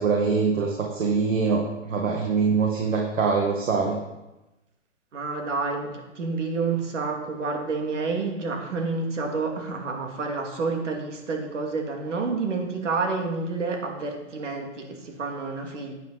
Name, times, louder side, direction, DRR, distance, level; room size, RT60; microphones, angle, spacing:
voice 1, 0.0-4.0, right 5 dB, 90° right, 0 dB, 2.0 m, -24 dB
voice 2, 5.1-15.9, right 4 dB, 70° right, 2 dB, 2.5 m, -29 dB
10.5 x 9.2 x 4.1 m, 0.99 s
hypercardioid pair, 170°, 38 cm